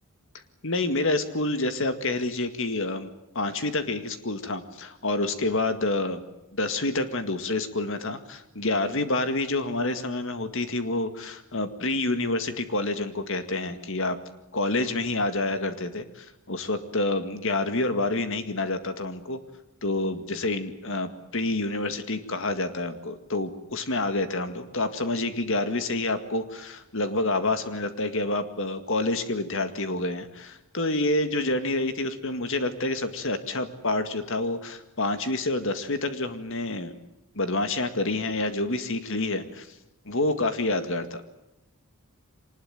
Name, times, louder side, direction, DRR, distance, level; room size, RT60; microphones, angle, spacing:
voice 1, 0.6-3.1 3.3-6.2 6.5-14.2 14.5-19.4 19.8-37.0 37.3-39.7 40.1-41.2, left 2 dB, 60° left, 9 dB, 2.0 m, -28 dB
25.0 x 20.0 x 8.9 m, 0.90 s
head